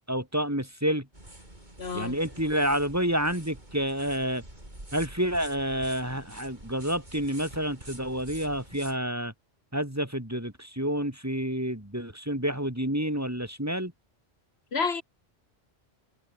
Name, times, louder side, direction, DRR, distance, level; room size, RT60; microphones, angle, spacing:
voice 1, 0.1-1.1 1.9-4.4 4.9-9.3 9.7-13.9, equal, 15° right, 2.8 m, -29 dB
sound 1, 1.1-9.0, right 1 dB, 45° right, 7.2 m, -47 dB
voice 2, 1.8-2.2 14.7-15.0, left 5 dB, 75° left, 1.8 m, -29 dB
omnidirectional pair, 1.1 m